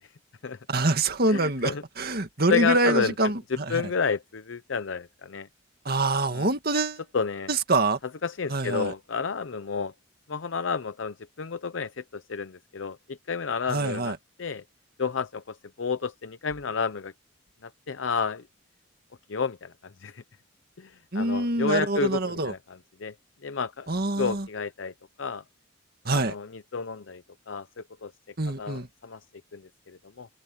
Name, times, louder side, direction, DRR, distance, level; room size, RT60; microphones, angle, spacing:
voice 1, 0.7-3.8 5.9-7.0 7.5-8.0 8.5-8.9 13.7-14.2 21.1-22.5 23.9-24.5 26.1-26.3 28.4-28.9, right 2 dB, 50° right, 2.1 m, -25 dB
voice 2, 1.3-1.8 2.5-3.1 3.5-5.5 6.3-6.5 7.1-7.5 8.2-9.9 10.3-14.6 15.0-17.1 17.6-18.4 19.3-19.7 20.0-20.2 20.8-22.6 23.0-23.1 23.4-23.9 24.2-24.9 25.2-25.4 26.1-28.1 28.5-29.2 29.5-30.3, left 5 dB, 70° left, 0.7 m, -31 dB
open air
head